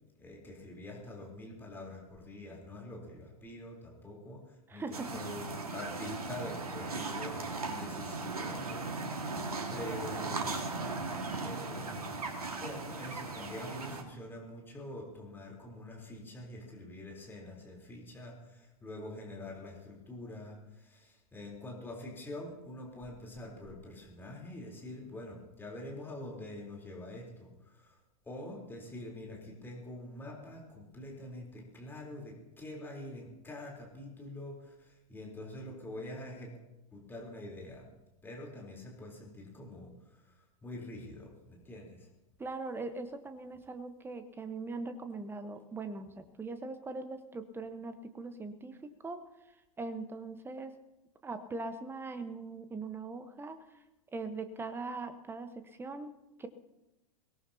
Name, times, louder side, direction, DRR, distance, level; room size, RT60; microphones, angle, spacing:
voice 1, 0.2-10.6 11.1-36.6 36.9-37.9 38.2-42.1, left 1 dB, 10° left, -1 dB, 3.7 m, -46 dB
voice 2, 4.7-5.1 42.4-49.2 49.8-50.8 51.2-53.8 54.1-56.5, right 3 dB, 10° right, 10 dB, 1.2 m, -41 dB
sound 1, 4.9-14.0, right 3 dB, 75° right, 1.9 m, -38 dB
23.0 x 18.0 x 2.9 m, 0.97 s
figure-of-eight pair, 95°, 19 cm